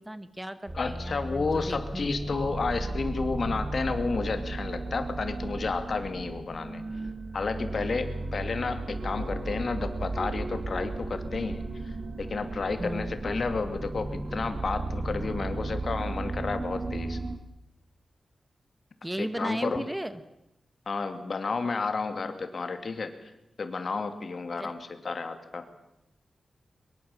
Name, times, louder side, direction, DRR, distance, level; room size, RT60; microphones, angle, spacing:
voice 1, 0.0-2.1 12.8-13.2 19.0-20.2 24.6-24.7, right 1 dB, 10° right, 11 dB, 1.1 m, -36 dB
voice 2, 0.7-6.8 7.3-17.2 19.2-19.8 20.9-23.3 23.6-25.6, left 4 dB, 50° left, 8 dB, 2.7 m, -31 dB
sound 1, 0.7-17.4, right 2 dB, 25° right, 1.8 m, -35 dB
23.5 x 22.5 x 7.4 m, 0.85 s
wide cardioid pair, 130°, 0 cm